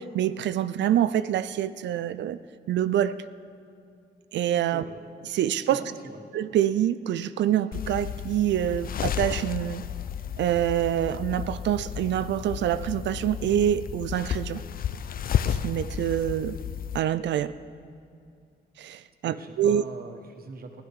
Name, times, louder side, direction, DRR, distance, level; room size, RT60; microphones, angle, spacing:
voice 1, 0.0-2.4 2.7-3.2 4.3-4.8 5.3-5.8 6.3-9.8 10.4-14.6 15.5-16.6 16.9-17.5 18.8-19.8, right 11 dB, 80° right, 14 dB, 0.4 m, -26 dB
voice 2, 5.7-6.2 19.2-20.8, right 4 dB, 55° right, 5 dB, 1.4 m, -42 dB
sound 1, 7.7-17.0, left 9 dB, 55° left, 0.5 m, -32 dB
16.5 x 11.5 x 4.8 m, 2.4 s
cardioid pair, 90°, 18 cm